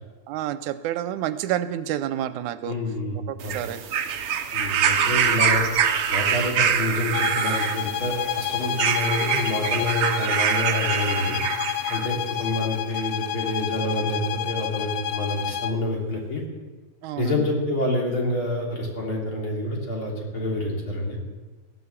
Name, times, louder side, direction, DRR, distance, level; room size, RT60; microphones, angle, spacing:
voice 1, 0.3-2.8 3.3-3.8 17.0-17.5, right 12 dB, 85° right, 12 dB, 2.1 m, -29 dB
voice 2, 2.6-3.2 3.4-3.6 4.5-5.6 6.1-11.4 11.9-16.4 17.2-21.2, left 1 dB, 45° left, -2 dB, 3.9 m, -27 dB
sound 1, 3.4-12.1 13.0-13.1, right 7 dB, 65° right, 1.4 m, -25 dB
sound 2, 7.1-15.8, left 10 dB, 80° left, 1.6 m, -29 dB
16.0 x 11.0 x 7.3 m, 1.3 s
omnidirectional pair, 3.5 m